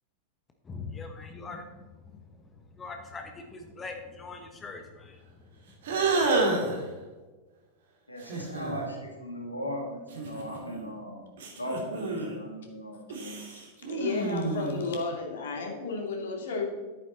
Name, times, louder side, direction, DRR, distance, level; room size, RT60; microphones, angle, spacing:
voice 1, 0.6-5.4 5.9-6.3, left 4 dB, 20° left, 4 dB, 1.1 m, -43 dB
sound 1, 5.8-6.8 8.2-8.8 10.1-10.9 11.4-12.4 13.1-14.9, right 3 dB, 60° right, 2.3 m, -29 dB
voice 2, 8.1-11.2 11.5-13.4, equal, 85° left, 0 dB, 2.4 m, -37 dB
voice 3, 13.2-13.6 13.9-16.7, left 4 dB, 60° left, 2 dB, 2.3 m, -33 dB
11.0 x 9.0 x 4.3 m, 1.3 s
figure-of-eight pair, 90°, 0 cm